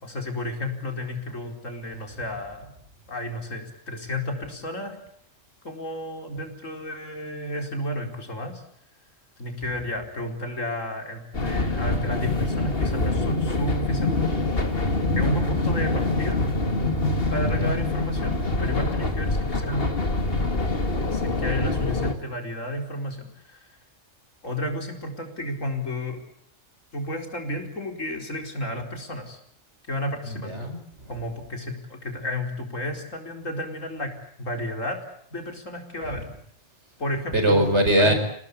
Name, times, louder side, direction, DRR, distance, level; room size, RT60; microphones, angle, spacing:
voice 1, 0.0-2.7 3.1-5.0 5.6-8.6 9.4-14.3 15.1-16.4 17.3-19.9 21.1-23.8 24.4-26.2 26.9-29.4 29.9-30.5 31.1-35.0 35.3-36.2 37.0-37.7 38.0-38.1, left 1 dB, 75° left, 3 dB, 4.9 m, -32 dB
sound 1, 11.3-22.1, left 2 dB, 45° left, 2.6 m, -25 dB
voice 2, 14.3-14.8 17.4-17.8 30.3-31.1 37.3-38.1, right 1 dB, 60° right, 6 dB, 5.3 m, -23 dB
27.5 x 18.5 x 8.6 m, 0.68 s
omnidirectional pair, 1.3 m